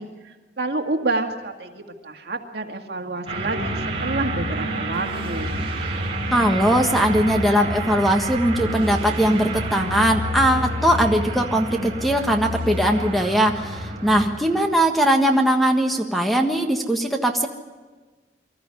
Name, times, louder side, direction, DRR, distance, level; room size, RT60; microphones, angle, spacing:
voice 1, 0.0-5.6, right 2 dB, 65° right, 3 dB, 2.1 m, -29 dB
sound 1, 3.3-14.7, right 1 dB, 35° right, 2.9 m, -28 dB
voice 2, 6.3-17.5, right 1 dB, ahead, 3 dB, 1.4 m, -20 dB
25.0 x 13.5 x 9.8 m, 1.3 s
head